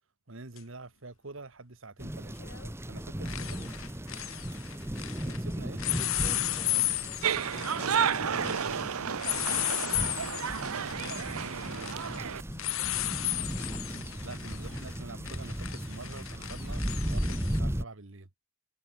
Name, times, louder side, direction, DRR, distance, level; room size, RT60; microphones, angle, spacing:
voice 1, 0.3-2.4 2.9-3.5 5.2-5.8 10.1-12.0 14.2-18.3, right 2 dB, 60° right, 1.5 m, -46 dB
sound 1, 0.6-0.7 2.4-2.7 3.0-5.4 5.8-17.6, left 15 dB, 65° left, 1.6 m, -35 dB
sound 2, 2.0-17.8, equal, 10° right, 1.1 m, -36 dB
voice 2, 3.2-3.7 5.8-9.5 12.8-12.9 13.1-13.3, left 1 dB, 30° left, 5.4 m, -49 dB
sound 3, 7.2-12.4, right 7 dB, 80° right, 0.8 m, -31 dB
head